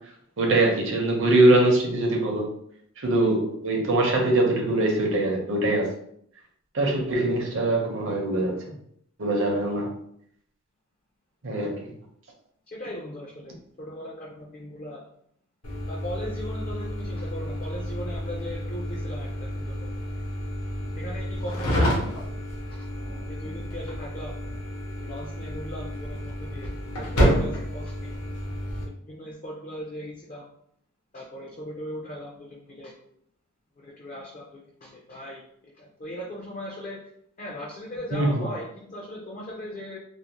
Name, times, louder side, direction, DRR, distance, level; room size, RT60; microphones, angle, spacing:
voice 1, 0.4-2.5 3.0-5.9 6.7-8.6 9.2-10.0 11.4-11.9 38.1-38.4, right 2 dB, 60° right, 0 dB, 0.6 m, -22 dB
voice 2, 12.7-15.0 15.9-19.9 21.0-22.1 22.7-22.8 23.3-24.3 25.0-26.7 27.0-28.1 28.8-30.4 31.1-32.9 33.8-35.4 35.8-37.0 37.4-40.0, equal, 35° left, -3 dB, 0.4 m, -38 dB
sound 1, 15.6-28.8, equal, 75° left, 0.8 m, -29 dB
2.5 x 2.0 x 2.9 m, 0.69 s
head